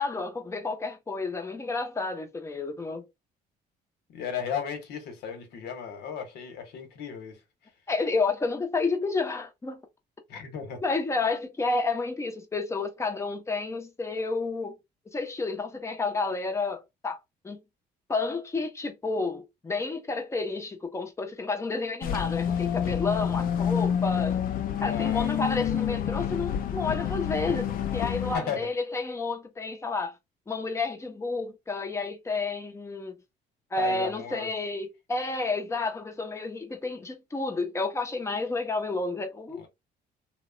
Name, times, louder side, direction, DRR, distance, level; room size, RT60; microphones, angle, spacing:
voice 1, 0.0-3.0 7.9-9.8 10.8-14.8 15.1-17.2 17.4-17.6 18.1-24.4 24.8-30.2 30.5-33.1 33.7-39.7, left 3 dB, 15° left, 0.6 m, -30 dB
voice 2, 4.1-7.4 10.3-10.8 24.8-25.3 28.3-28.7 33.8-34.5 39.6-39.7, left 7 dB, 75° left, 0.9 m, -35 dB
sound 1, 22.0-28.4, left 8 dB, 55° left, 0.5 m, -28 dB
2.8 x 2.0 x 2.5 m
cardioid pair, 110°, 17 cm